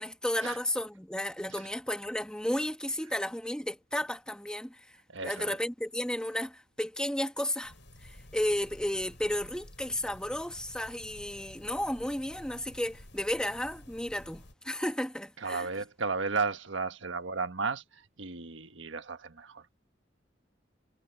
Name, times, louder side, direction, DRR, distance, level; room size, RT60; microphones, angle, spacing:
voice 1, 0.0-7.7 8.0-15.7, left 1 dB, 5° left, 1.2 m, -33 dB
voice 2, 5.1-5.6 15.4-19.7, right 4 dB, 85° right, 1.4 m, -34 dB
sound 1, 7.6-14.5, left 1 dB, 70° left, 7.1 m, -52 dB
head